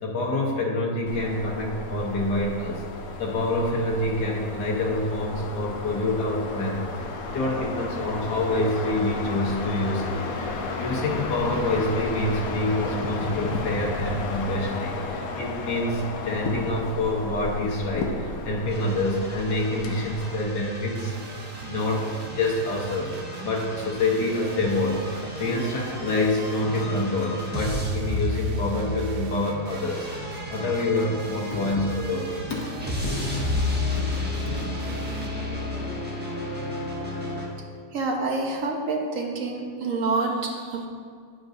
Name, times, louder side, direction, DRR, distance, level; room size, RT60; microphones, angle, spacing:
voice 1, 0.0-2.8 3.2-6.8 7.3-21.1 21.7-23.1 23.4-25.1 25.4-30.1 30.5-32.6 33.0-33.2 33.6-33.7 34.5-34.6, left 1 dB, 85° left, -2 dB, 1.8 m, -27 dB
sound 1, 1.1-20.5, left 3 dB, 65° left, 1.2 m, -33 dB
sound 2, 18.7-37.5, left 2 dB, 5° right, 1.0 m, -33 dB
sound 3, 20.9-35.3, right 4 dB, 85° right, 1.2 m, -41 dB
voice 2, 37.9-40.9, right 3 dB, 55° right, 1 dB, 1.2 m, -27 dB
9.4 x 7.7 x 2.7 m, 2.2 s
omnidirectional pair, 1.8 m